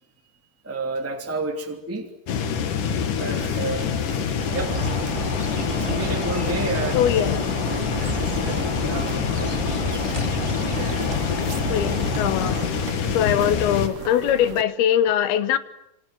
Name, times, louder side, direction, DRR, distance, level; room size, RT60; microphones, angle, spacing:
voice 1, 0.6-2.1 3.1-4.0 4.5-4.8 5.7-7.3 8.1-10.1 13.0-13.2 13.7-13.8 14.3-14.5 14.9-15.0, right 3 dB, 5° right, 3 dB, 2.2 m, -32 dB
sound 1, 2.3-13.9, left 7 dB, 60° left, 3.2 m, -26 dB
sound 2, 3.3-14.6, right 8 dB, 60° right, 1.7 m, -38 dB
sound 3, 4.5-12.7, right 2 dB, 40° right, 0.4 m, -32 dB
voice 2, 6.9-7.4 11.7-12.6 13.1-15.6, left 10 dB, 90° left, 13 dB, 3.2 m, -21 dB
27.5 x 26.5 x 7.9 m, 0.79 s
omnidirectional pair, 4.3 m